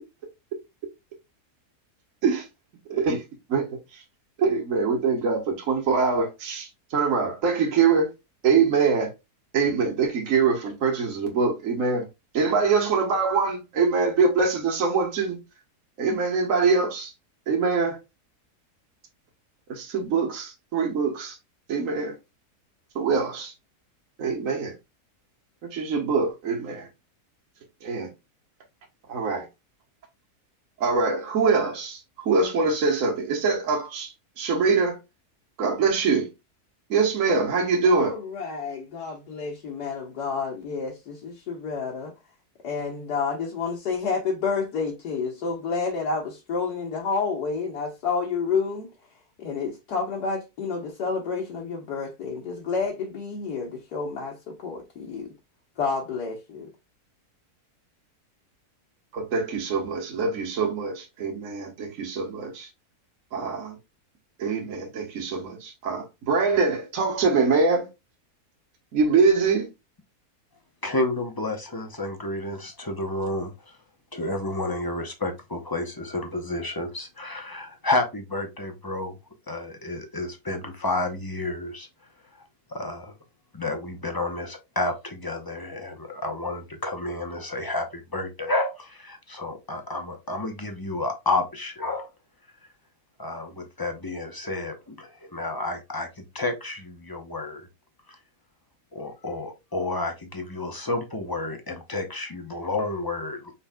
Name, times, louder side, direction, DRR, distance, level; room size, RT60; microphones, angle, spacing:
voice 1, 2.9-3.2 3.5-4.0 4.4-8.1 8.4-9.1 9.5-12.0 12.3-15.4 16.0-17.1 17.5-18.0 19.7-21.4 21.7-22.2 22.9-23.5 24.2-24.7 25.6-26.9 27.8-28.1 29.1-29.5 30.8-32.0 32.2-35.0 35.6-36.3 36.9-38.1 59.1-62.7 63.3-63.8 64.4-67.9 68.9-69.7, right 4 dB, 60° right, 1.6 m, -24 dB
voice 2, 37.8-42.1 42.6-48.9 49.4-55.3 55.8-56.7, left 5 dB, 80° left, 1.7 m, -29 dB
voice 3, 70.8-73.8 74.1-79.1 79.5-81.9 82.7-83.1 83.5-92.1 93.2-97.7 98.1-98.2 98.9-103.5, left 2 dB, 25° left, 0.5 m, -30 dB
5.5 x 4.2 x 2.2 m
omnidirectional pair, 1.7 m